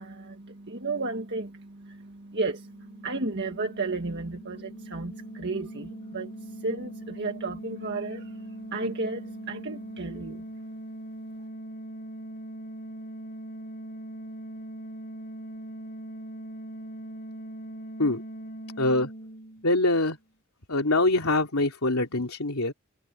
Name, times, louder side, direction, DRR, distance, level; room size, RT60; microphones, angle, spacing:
voice 1, 0.0-10.4, right 3 dB, 55° right, 1.7 m, -33 dB
sound 1, 2.6-20.1, right 1 dB, 45° left, 3.3 m, -41 dB
voice 2, 18.8-19.1 19.6-20.2 20.7-22.7, left 2 dB, 80° left, 3.1 m, -24 dB
head